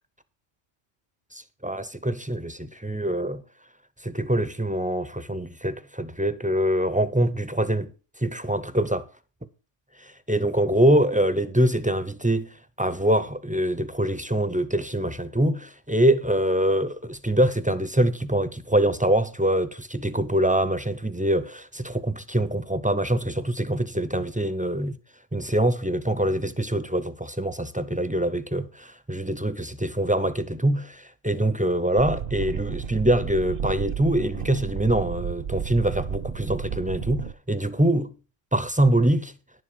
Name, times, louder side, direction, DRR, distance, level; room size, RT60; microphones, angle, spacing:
voice 1, 1.3-3.4 4.0-7.9 8.2-9.1 10.0-12.5 12.8-25.0 25.3-38.1 38.5-39.3, right 1 dB, 10° right, 0.4 m, -24 dB
sound 1, 32.0-37.3, right 8 dB, 55° right, 0.8 m, -32 dB
10.5 x 7.4 x 5.2 m
omnidirectional pair, 1.3 m